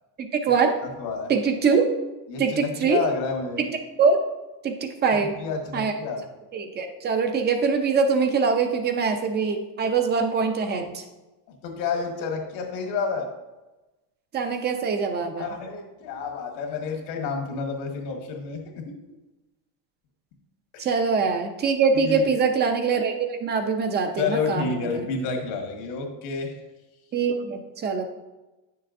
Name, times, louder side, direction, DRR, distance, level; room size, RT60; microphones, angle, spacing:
voice 1, 0.2-0.8 1.3-1.9 2.4-3.0 3.6-3.7 4.0-4.2 4.6-5.3 5.7-5.9 6.5-11.0 14.3-15.5 20.8-25.0 27.1-28.0, right 5 dB, 20° right, 6 dB, 0.5 m, -23 dB
voice 2, 0.8-1.3 2.3-3.6 5.1-6.3 11.6-13.3 15.4-19.0 20.7-21.0 21.9-22.3 24.2-26.5, left 4 dB, 80° left, 2 dB, 1.8 m, -30 dB
9.5 x 6.7 x 2.6 m, 1.1 s
cardioid pair, 160°, 48 cm